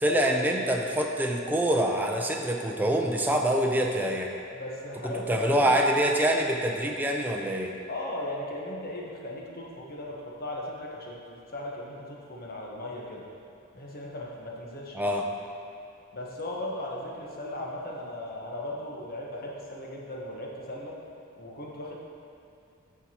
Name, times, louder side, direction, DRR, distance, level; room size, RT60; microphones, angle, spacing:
voice 1, 0.0-4.3 5.0-7.7 14.9-15.2, right 1 dB, 10° right, 1 dB, 0.5 m, -25 dB
voice 2, 4.5-5.7 7.9-13.3 13.7-15.0 16.1-21.0 21.4-22.0, left 1 dB, 45° left, -3 dB, 1.1 m, -37 dB
13.0 x 4.7 x 2.9 m, 2.5 s
head